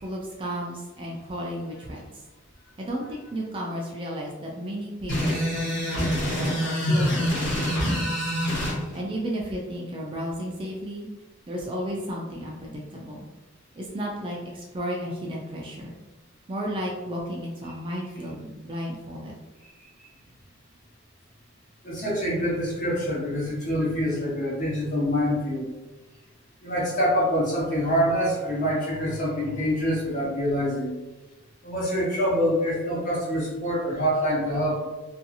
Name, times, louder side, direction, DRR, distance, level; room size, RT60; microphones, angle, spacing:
voice 1, 0.0-2.2 2.8-8.2 8.9-11.1 11.5-13.3 13.7-15.9 16.5-19.3, equal, 25° right, -2 dB, 0.3 m, -33 dB
sound 1, 5.1-8.8, equal, 55° left, 1.2 m, -25 dB
voice 2, 21.8-25.7 26.6-30.9 31.6-34.9, equal, 40° left, -6 dB, 0.9 m, -25 dB
2.6 x 2.4 x 2.6 m, 1.1 s
head